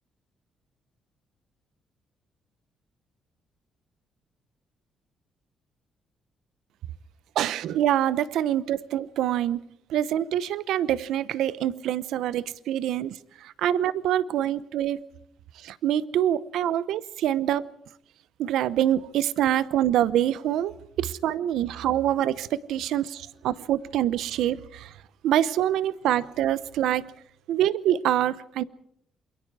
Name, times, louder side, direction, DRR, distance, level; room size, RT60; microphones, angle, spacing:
voice 1, 7.4-9.6 9.9-15.0 15.6-17.6 18.4-24.9 25.2-27.1 27.5-28.6, right 11 dB, 85° right, 17 dB, 0.8 m, -25 dB
28.0 x 22.5 x 4.8 m, 0.66 s
cardioid pair, 90°, 0 cm